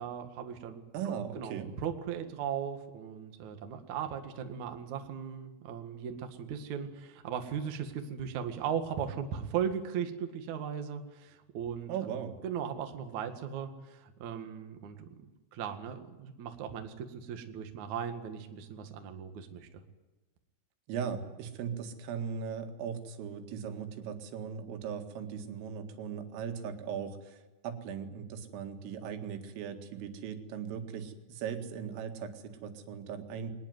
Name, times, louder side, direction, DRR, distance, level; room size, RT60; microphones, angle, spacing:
voice 1, 0.0-0.9 1.3-11.9 12.4-15.1 15.5-19.8, right 8 dB, 50° right, 6 dB, 2.5 m, -37 dB
voice 2, 0.9-1.7 11.9-12.4 20.9-33.5, right 7 dB, 90° right, 6 dB, 4.6 m, -38 dB
22.0 x 20.0 x 9.6 m, 1.1 s
omnidirectional pair, 5.7 m